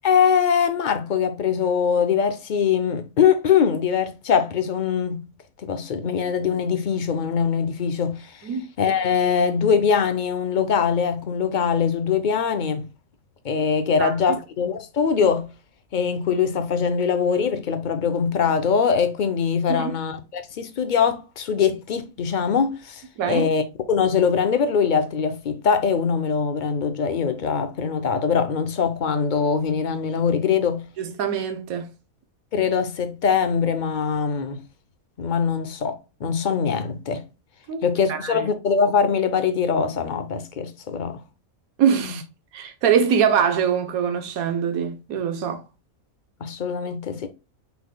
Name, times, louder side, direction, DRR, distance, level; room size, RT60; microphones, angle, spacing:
voice 1, 0.0-5.2 5.6-8.4 8.8-12.9 13.4-15.5 15.9-23.6 23.9-30.9 32.5-34.6 35.2-37.2 37.8-41.2 46.4-47.3, left 6 dB, 55° left, 0.5 m, -22 dB
voice 2, 31.0-31.9 37.7-37.8 38.1-38.5 41.8-42.2 42.5-45.6, right 7 dB, 80° right, 1.3 m, -23 dB
5.7 x 3.9 x 2.2 m
omnidirectional pair, 1.5 m